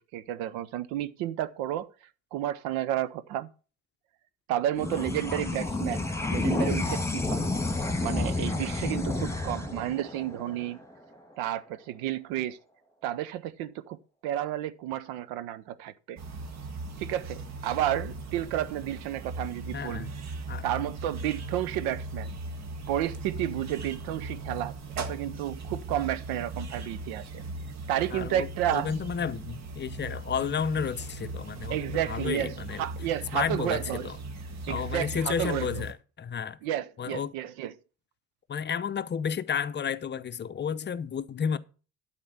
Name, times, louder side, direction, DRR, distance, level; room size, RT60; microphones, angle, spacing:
voice 1, 0.1-1.9 2.3-3.5 4.5-7.5 8.0-10.8 11.4-12.6 13.0-14.0 14.2-16.2 17.0-20.1 20.6-22.4 22.9-27.4 27.9-28.9 31.7-34.1 34.7-35.7 36.6-37.7, right 12 dB, 60° right, 0.8 m, -31 dB
sound 1, 4.7-11.5, left 2 dB, 5° left, 1.8 m, -30 dB
sound 2, 16.2-35.9, right 2 dB, 40° right, 1.5 m, -38 dB
voice 2, 19.7-20.1 20.5-20.6 28.1-32.9 33.3-34.2 34.7-36.6 37.0-37.3 38.5-41.6, left 7 dB, 25° left, 0.7 m, -32 dB
12.0 x 4.4 x 7.5 m
figure-of-eight pair, 50°, 41 cm